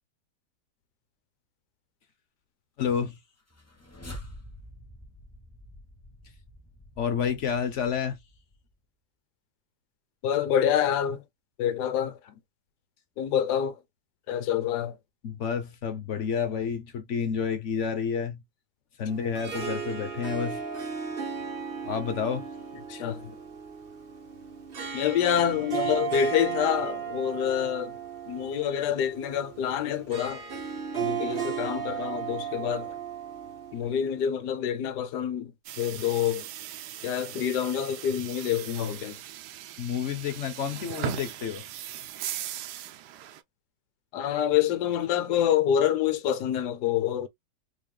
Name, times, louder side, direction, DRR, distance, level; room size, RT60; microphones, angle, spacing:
voice 1, 2.8-3.2 7.0-8.2 15.2-18.4 19.0-20.6 21.8-22.5 39.8-41.6, left 7 dB, 55° left, 1.0 m, -29 dB
sound 1, 3.4-8.7, equal, 15° left, 0.5 m, -47 dB
voice 2, 10.2-11.2 11.6-12.3 13.2-13.8 14.3-15.0 22.9-23.3 24.9-28.0 28.3-30.4 30.9-32.9 33.7-35.5 35.8-36.5 37.0-39.2 44.1-47.3, left 9 dB, 75° left, 1.3 m, -27 dB
Harp, 19.1-34.3, right 7 dB, 45° right, 0.8 m, -35 dB
sound 2, 35.6-43.4, right 12 dB, 75° right, 1.1 m, -39 dB
3.9 x 3.5 x 2.2 m
omnidirectional pair, 1.8 m